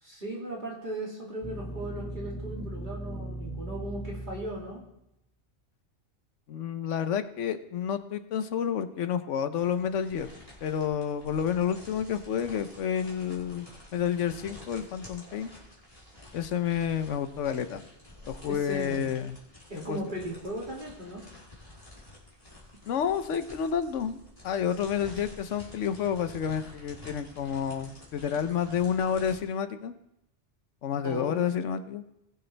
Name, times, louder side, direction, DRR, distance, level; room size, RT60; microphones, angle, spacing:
voice 1, 0.0-4.8 18.5-19.1 19.7-21.2 31.0-31.4, right 1 dB, 45° right, -3 dB, 2.6 m, -37 dB
sound 1, 1.4-4.9, right 1 dB, 5° left, 1.0 m, -38 dB
voice 2, 6.5-10.3 10.6-15.5 16.3-17.8 18.3-19.4 19.8-20.0 22.9-24.2 24.4-29.9 30.8-32.0, left 8 dB, 90° left, 10 dB, 1.1 m, -30 dB
sound 2, 9.6-29.4, left 1 dB, 30° left, 3.1 m, -50 dB
20.0 x 6.7 x 3.3 m, 0.84 s
omnidirectional pair, 1.2 m